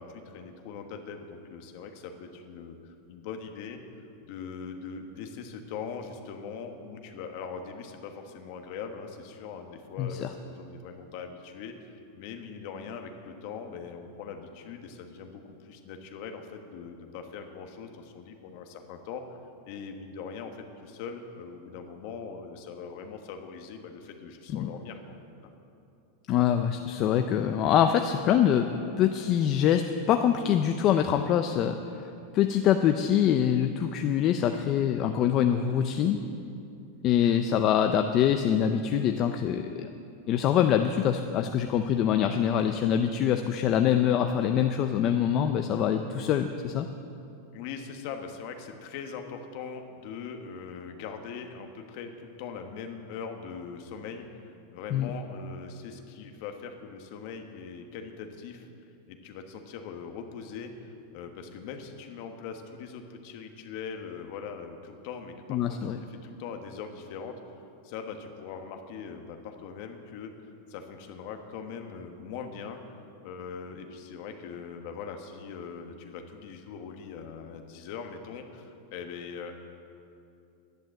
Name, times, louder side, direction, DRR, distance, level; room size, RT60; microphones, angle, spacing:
voice 1, 0.0-3.8 4.3-19.4 19.7-25.2 37.2-37.4 47.5-58.7 59.1-67.4 67.8-70.3 70.7-72.8 73.2-79.5, left 6 dB, 45° left, 5 dB, 1.2 m, -41 dB
voice 2, 10.0-10.3 24.5-24.7 26.3-28.7 29.0-36.2 37.0-39.9 40.3-46.9 54.9-55.1 65.5-66.0, left 9 dB, 30° left, 6 dB, 0.4 m, -24 dB
11.0 x 10.5 x 7.6 m, 2.6 s
supercardioid pair, 170°, 0 cm